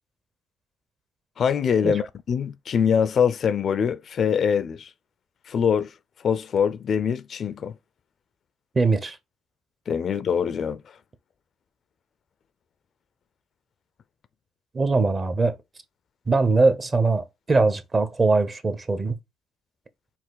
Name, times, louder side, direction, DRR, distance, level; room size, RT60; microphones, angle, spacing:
voice 1, 1.4-4.9 5.5-5.9 6.2-7.8 9.9-10.8, left 7 dB, 55° left, 0.3 m, -23 dB
voice 2, 8.7-9.2 14.7-15.6 16.3-19.2, right 3 dB, 35° right, 0.7 m, -21 dB
4.3 x 2.4 x 3.8 m
supercardioid pair, 75°, 0 cm